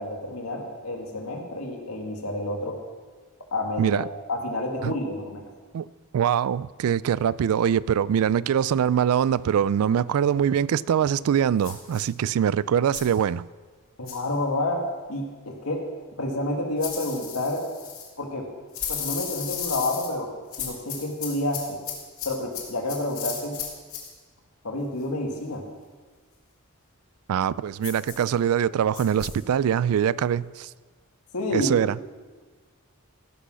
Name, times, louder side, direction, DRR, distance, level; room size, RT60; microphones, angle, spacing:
voice 1, 0.0-2.8 3.5-5.4 14.0-14.8 15.1-15.8 16.2-17.7 18.2-18.5 18.9-20.3 20.6-21.8 22.2-23.6 24.6-25.6 31.3-31.7, left 1 dB, 90° left, 1.8 m, -29 dB
voice 2, 6.1-13.5 27.3-30.7 31.5-32.0, right 8 dB, 75° right, 0.3 m, -23 dB
sound 1, 11.6-12.1 12.9-13.2 14.1-14.3 16.8-18.1 18.7-20.1 20.5-24.1 27.8-28.3 28.9-29.4, left 8 dB, 65° left, 2.3 m, -35 dB
15.5 x 6.2 x 6.3 m
head